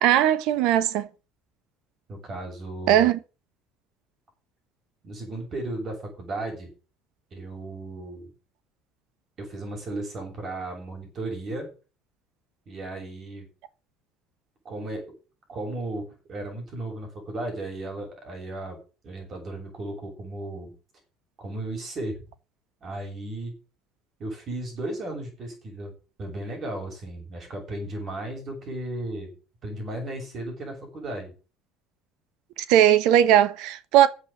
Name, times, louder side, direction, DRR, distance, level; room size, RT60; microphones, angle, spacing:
voice 1, 0.0-1.1 2.9-3.2 32.6-34.1, right 11 dB, 65° right, 1.1 m, -19 dB
voice 2, 2.1-3.1 5.0-6.7 7.3-8.3 9.4-11.7 12.7-13.5 14.6-15.0 15.5-20.7 21.4-22.3 22.8-23.5 24.2-29.3 29.6-31.3, right 2 dB, 45° right, 7.3 m, -35 dB
10.0 x 7.9 x 8.9 m
hypercardioid pair, 65°, 0 cm